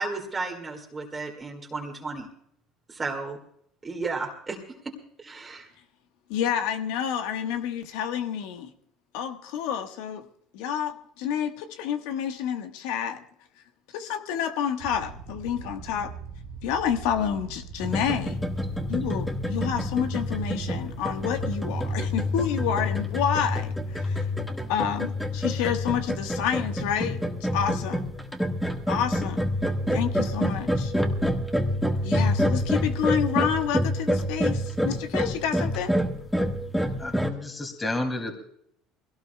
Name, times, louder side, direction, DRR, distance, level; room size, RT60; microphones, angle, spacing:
voice 1, 0.0-2.3 2.9-3.4 3.8-4.6 4.8-4.9 5.2-5.7, right 3 dB, 20° right, 0 dB, 2.0 m, -33 dB
voice 2, 6.3-8.7 9.1-10.2 10.5-13.2 13.9-16.1 16.6-18.4 18.9-24.3 24.7-28.0 28.9-29.4 29.9-30.9 32.0-35.9, left 8 dB, 80° left, 7 dB, 1.3 m, -29 dB
sound 1, 14.8-22.5, right 5 dB, 70° right, 1.5 m, -41 dB
sound 2, 17.8-37.3, left 1 dB, 5° left, 1.5 m, -27 dB
voice 3, 37.0-38.4, left 2 dB, 20° left, 5 dB, 2.4 m, -31 dB
22.0 x 17.5 x 2.3 m, 0.68 s
supercardioid pair, 90°, 0 cm